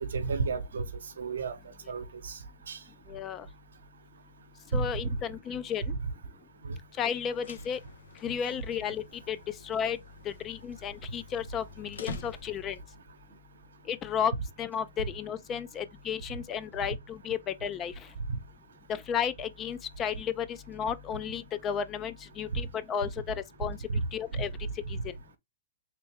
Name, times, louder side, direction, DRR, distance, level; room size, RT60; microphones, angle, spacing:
voice 1, 0.0-0.8 1.2-1.6 1.9-2.3 2.7-2.8 4.7-5.1 6.7-6.8 23.9-24.0, right 4 dB, 90° right, 0.8 m, -31 dB
voice 2, 3.1-3.5 4.7-5.9 7.0-7.8 8.2-9.4 9.6-10.0 10.2-12.8 13.9-14.3 14.6-17.9 18.9-23.8 24.1-24.5 24.9-25.0, left 8 dB, 20° left, 0.4 m, -33 dB
sound 1, 7.2-12.9, left 3 dB, 90° left, 0.8 m, -47 dB
3.5 x 3.3 x 3.2 m
hypercardioid pair, 150°, 0 cm